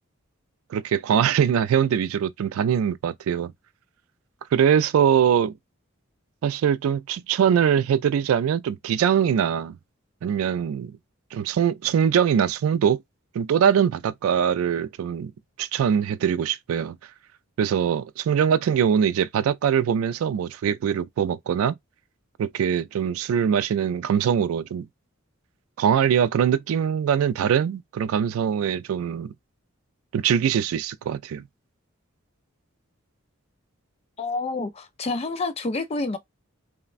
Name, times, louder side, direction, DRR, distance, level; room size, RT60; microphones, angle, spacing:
voice 1, 0.7-3.5 4.5-5.5 6.4-9.8 10.2-10.9 11.3-13.0 13.3-15.3 15.6-17.0 17.6-21.7 22.4-24.9 25.8-29.3 30.1-31.4, right 8 dB, 90° right, 0.3 m, -22 dB
voice 2, 34.2-36.2, left 3 dB, 30° left, 0.4 m, -28 dB
3.1 x 2.1 x 2.4 m
head